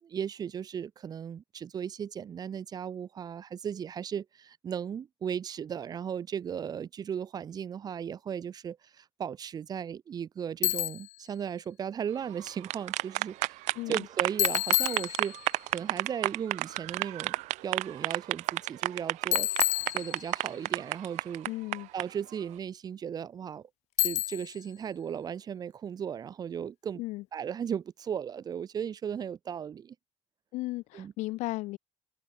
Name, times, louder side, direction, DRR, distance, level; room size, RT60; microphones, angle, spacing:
voice 1, 0.0-17.4 17.6-19.5 19.9-21.5 21.9-23.7 24.0-27.0 27.3-30.0 30.9-31.1, right 8 dB, 35° right, 2.0 m, -36 dB
Bicycle, 10.6-11.2 14.4-15.6 19.3-20.6 24.0-24.6, left 17 dB, 70° left, 0.8 m, -29 dB
sound 1, 12.3-22.0, right 20 dB, 85° right, 1.6 m, -31 dB
voice 2, 13.8-14.1 21.5-21.9 27.0-27.2 30.5-31.8, left 19 dB, 90° left, 3.6 m, -35 dB
cardioid pair, 155°, 12 cm